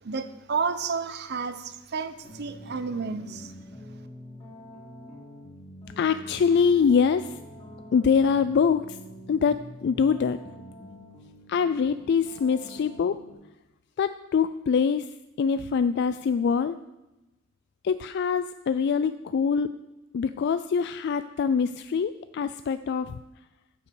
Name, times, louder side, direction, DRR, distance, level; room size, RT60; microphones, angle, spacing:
voice 1, 0.0-3.5, right 5 dB, 55° right, 11 dB, 0.7 m, -31 dB
sound 1, 2.2-13.3, equal, 30° left, 3.1 m, -45 dB
voice 2, 6.0-7.4 7.9-9.0 9.3-10.4 11.5-13.2 14.0-15.1 15.4-16.8 17.8-19.7 20.1-23.2, left 6 dB, 55° left, 12 dB, 0.3 m, -24 dB
10.0 x 5.7 x 7.0 m, 0.97 s
head